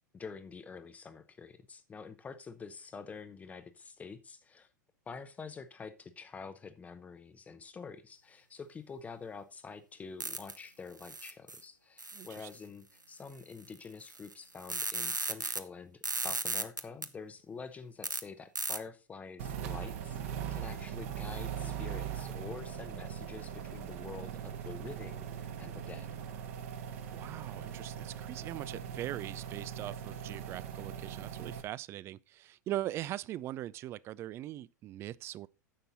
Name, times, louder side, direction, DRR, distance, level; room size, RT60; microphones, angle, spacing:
voice 1, 0.1-4.7 5.1-26.1, left 5 dB, 15° left, 0.7 m, -47 dB
sound 1, 10.2-10.6 11.0-11.6 12.0-12.5 13.7-13.8 14.0-15.6 16.0-17.1 18.0-18.2 18.6-18.8, right 2 dB, 85° right, 0.7 m, -35 dB
voice 2, 12.1-12.5 27.1-35.5, right 14 dB, 25° right, 0.4 m, -41 dB
sound 2, 19.4-31.6, right 8 dB, 50° right, 1.4 m, -40 dB
10.0 x 6.8 x 4.0 m
figure-of-eight pair, 95°, 10 cm